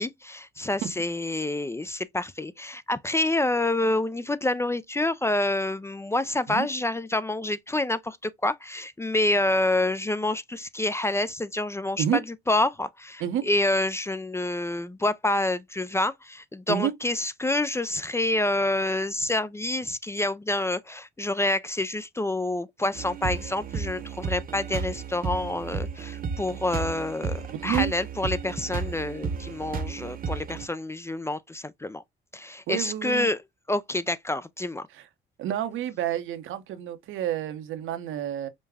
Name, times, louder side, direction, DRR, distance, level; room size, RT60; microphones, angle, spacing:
voice 1, 0.0-12.0 12.5-32.0 32.3-33.4 33.7-34.9, left 2 dB, 15° left, 0.3 m, -27 dB
sound 1, 22.9-30.7, right 5 dB, 45° right, 0.9 m, -33 dB
voice 2, 27.5-27.9 32.7-33.3 34.9-35.1 35.4-38.5, right 10 dB, 85° right, 0.9 m, -29 dB
5.2 x 2.2 x 3.3 m
cardioid pair, 90°, 20 cm